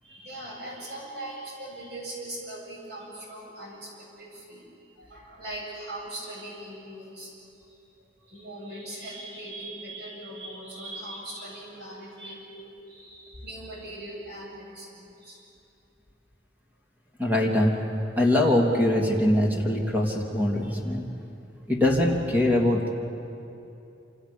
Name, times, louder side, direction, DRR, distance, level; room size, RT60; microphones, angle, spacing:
voice 1, 0.0-4.7 5.0-7.3 7.7-7.8 8.2-15.4, right 1 dB, 65° right, -2 dB, 8.0 m, -40 dB
voice 2, 17.2-17.8 18.2-21.0 21.7-22.9, left 1 dB, 10° right, -1 dB, 3.1 m, -22 dB
27.5 x 27.0 x 7.2 m, 2.8 s
head